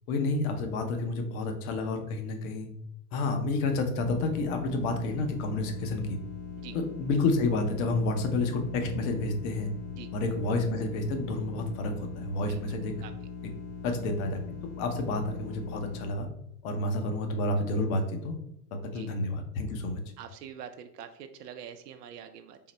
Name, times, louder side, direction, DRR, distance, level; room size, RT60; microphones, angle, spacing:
voice 1, 0.1-2.7 3.1-6.2 6.7-9.7 10.1-12.9 13.8-14.4 14.8-16.3 16.6-18.4 18.9-20.0, left 2 dB, 60° left, 4 dB, 0.9 m, -29 dB
sound 1, 4.0-16.1, left 6 dB, 30° left, 1.0 m, -41 dB
voice 2, 20.2-22.6, right 8 dB, 85° right, 8 dB, 0.5 m, -45 dB
3.8 x 2.1 x 4.0 m, 0.77 s
hypercardioid pair, 105°, 47 cm